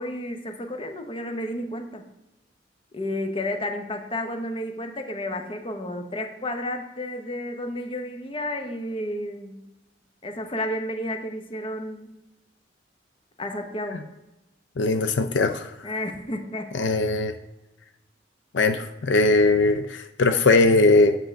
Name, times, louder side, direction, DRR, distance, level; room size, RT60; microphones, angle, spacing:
voice 1, 0.0-2.0 2.9-9.7 10.2-12.1 13.4-14.1 15.8-17.2, left 1 dB, 30° left, 5 dB, 0.9 m, -32 dB
voice 2, 14.8-15.7 16.7-17.3 18.5-21.2, left 3 dB, 80° left, 8 dB, 0.5 m, -20 dB
7.9 x 3.8 x 6.3 m, 0.95 s
head